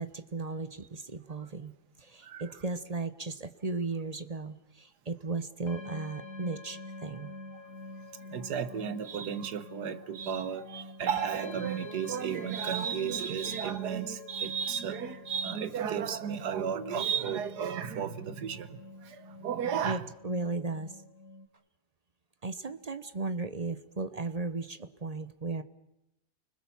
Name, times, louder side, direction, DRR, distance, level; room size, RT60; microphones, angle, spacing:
voice 1, 0.0-7.3 19.8-21.0 22.4-25.6, right 3 dB, 30° right, 0.8 m, -36 dB
voice 2, 2.2-2.5 8.2-20.0, right 8 dB, 75° right, 1.6 m, -33 dB
sound 1, 5.7-21.5, left 2 dB, 55° left, 1.7 m, -46 dB
29.0 x 20.5 x 7.2 m
omnidirectional pair, 1.7 m